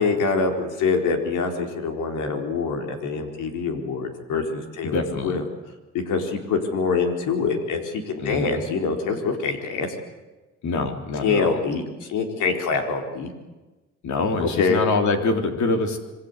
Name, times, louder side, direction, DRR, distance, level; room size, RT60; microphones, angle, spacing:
voice 1, 0.0-5.4 5.9-9.9 11.2-13.3 14.4-14.8, left 4 dB, 90° left, 4 dB, 4.3 m, -25 dB
voice 2, 4.8-5.4 8.2-8.6 10.6-11.6 14.0-16.0, left 3 dB, 70° left, 5 dB, 3.9 m, -25 dB
26.5 x 22.5 x 8.3 m, 1.2 s
cardioid pair, 90°, 30 cm